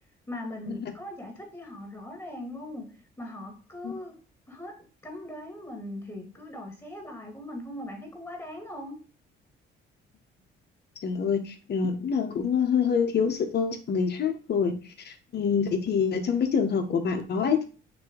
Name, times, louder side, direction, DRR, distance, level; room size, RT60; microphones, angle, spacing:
voice 1, 0.3-4.2 4.5-9.0, left 1 dB, 15° left, 2.2 m, -40 dB
voice 2, 11.0-14.7 15.0-17.7, left 6 dB, 55° left, 1.4 m, -26 dB
6.6 x 3.0 x 5.2 m
cardioid pair, 90°, 20 cm